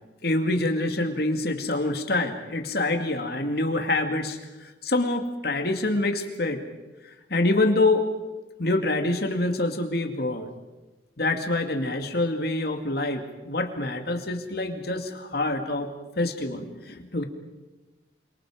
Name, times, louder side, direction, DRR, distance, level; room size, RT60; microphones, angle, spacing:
voice 1, 0.2-6.6 7.3-8.0 8.6-10.5 11.2-15.9 16.2-17.2, left 2 dB, 55° left, 5 dB, 2.5 m, -26 dB
28.5 x 25.5 x 5.1 m, 1.2 s
head